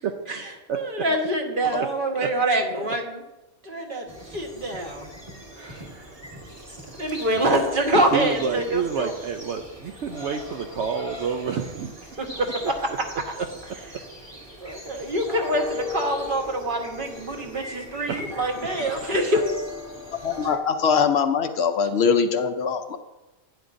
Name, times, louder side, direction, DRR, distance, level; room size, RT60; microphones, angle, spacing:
voice 1, 0.7-3.2 3.6-5.1 7.0-9.1 12.2-12.9 14.6-19.4, right 1 dB, 40° right, 2 dB, 1.3 m, -25 dB
sound 1, 4.1-20.6, left 2 dB, 20° right, 1.5 m, -39 dB
voice 2, 5.5-6.1 8.1-11.9 12.3-12.4 13.4-13.5 18.1-18.9, right 6 dB, 65° right, 5 dB, 0.9 m, -29 dB
voice 3, 20.2-23.0, left 6 dB, 60° left, 8 dB, 0.8 m, -22 dB
11.0 x 9.7 x 2.6 m, 1.0 s
omnidirectional pair, 1.4 m